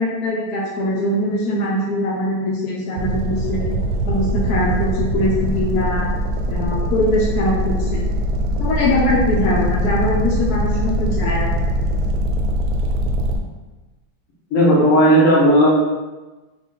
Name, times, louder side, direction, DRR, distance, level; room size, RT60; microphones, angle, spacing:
voice 1, 0.0-3.7 4.1-6.1 6.5-8.0 8.6-11.6, left 1 dB, 80° left, -3 dB, 0.8 m, -22 dB
sound 1, 3.0-13.4, equal, 80° right, 1.3 m, -22 dB
voice 2, 14.5-15.7, equal, 50° left, -5 dB, 1.1 m, -13 dB
3.8 x 2.4 x 3.7 m, 1.2 s
omnidirectional pair, 2.2 m